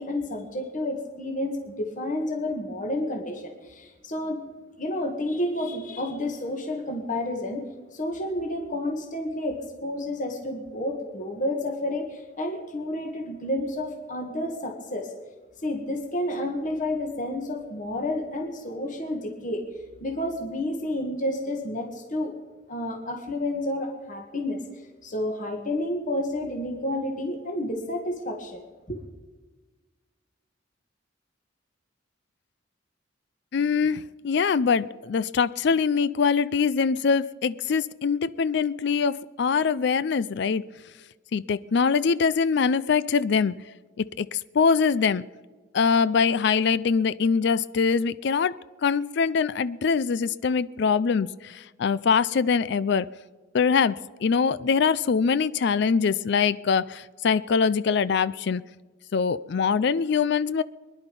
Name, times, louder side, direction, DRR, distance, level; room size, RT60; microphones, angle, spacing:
voice 1, 0.0-4.4 4.8-7.6 7.9-15.1 15.6-19.6 20.0-22.3 22.7-24.6 25.0-28.6 28.9-29.0, left 1 dB, 40° left, 3 dB, 1.9 m, -30 dB
voice 2, 33.5-40.7 41.3-43.5 44.0-45.2 45.7-53.1 53.5-58.6 59.1-60.6, left 5 dB, 60° left, 17 dB, 0.4 m, -23 dB
24.0 x 11.0 x 5.4 m, 1.3 s
head